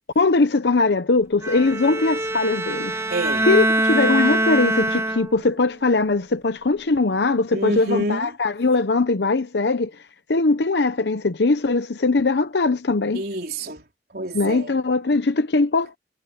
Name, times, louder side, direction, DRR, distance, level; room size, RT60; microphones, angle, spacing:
voice 1, 0.2-3.0 3.5-9.9 10.3-13.2 14.3-16.0, left 3 dB, 75° left, 0.8 m, -20 dB
Bowed string instrument, 1.4-5.6, right 1 dB, 15° right, 1.3 m, -23 dB
voice 2, 3.1-3.5 7.5-8.3 13.1-13.9 14.1-14.8, right 1 dB, 60° right, 4.3 m, -27 dB
head